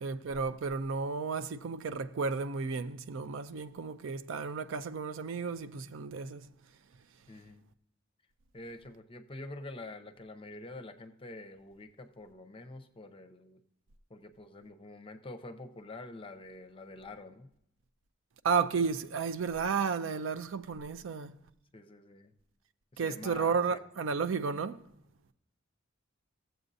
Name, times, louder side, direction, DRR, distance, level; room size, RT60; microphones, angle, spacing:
voice 1, 0.0-6.5 18.4-21.4 23.0-24.8, right 5 dB, 75° right, 0.5 m, -33 dB
voice 2, 7.3-7.6 8.5-13.6 14.1-17.5 21.7-22.3 22.9-23.8, left 2 dB, 25° left, 0.6 m, -47 dB
15.0 x 7.8 x 2.6 m
head